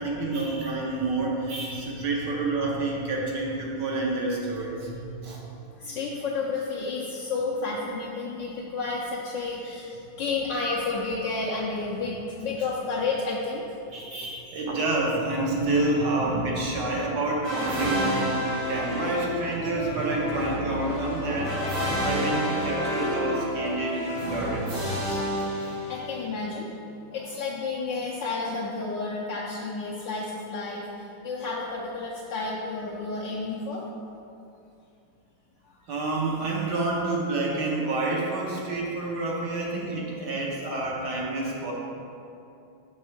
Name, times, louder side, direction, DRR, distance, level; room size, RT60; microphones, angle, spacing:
voice 1, 0.0-5.4 13.9-18.3 18.7-21.6 22.0-25.2 35.9-41.7, right 2 dB, 60° right, -3 dB, 1.3 m, -28 dB
voice 2, 5.8-13.6 25.9-26.7 27.1-30.9 31.2-33.8, left 3 dB, 70° left, -5 dB, 1.2 m, -31 dB
sound 1, 17.4-26.3, equal, 75° right, 2.6 m, -29 dB
6.3 x 3.6 x 5.8 m, 2.6 s
omnidirectional pair, 2.3 m